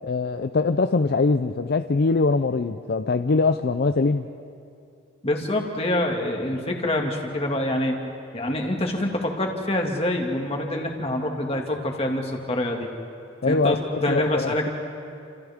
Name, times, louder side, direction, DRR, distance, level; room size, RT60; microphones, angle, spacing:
voice 1, 0.0-4.3 13.4-14.7, left 3 dB, 50° left, 9 dB, 0.5 m, -23 dB
voice 2, 5.2-7.9 8.3-12.9 13.5-14.7, left 1 dB, 30° left, 1 dB, 2.2 m, -26 dB
30.0 x 27.5 x 3.6 m, 2.7 s
head